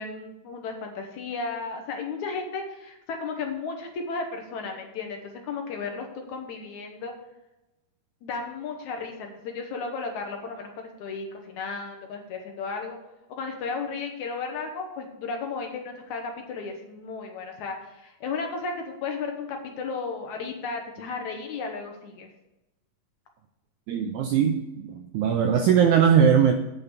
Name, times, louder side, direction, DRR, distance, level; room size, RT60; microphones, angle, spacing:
voice 1, 0.0-7.1 8.2-13.0 13.4-22.3, left 4 dB, 65° left, 3 dB, 2.1 m, -34 dB
voice 2, 23.9-26.5, right 8 dB, 85° right, 5 dB, 1.7 m, -20 dB
8.8 x 5.8 x 6.8 m, 0.98 s
omnidirectional pair, 4.1 m